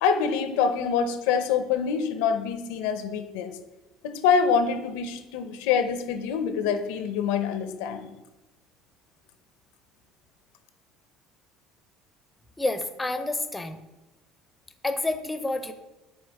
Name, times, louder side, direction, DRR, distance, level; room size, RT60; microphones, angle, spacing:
voice 1, 0.0-3.5 4.0-8.1, left 6 dB, 90° left, 8 dB, 0.7 m, -25 dB
voice 2, 12.6-13.8 14.8-15.7, left 2 dB, 10° left, 8 dB, 0.5 m, -29 dB
5.6 x 3.7 x 4.7 m, 1.0 s
cardioid pair, 115°, 0 cm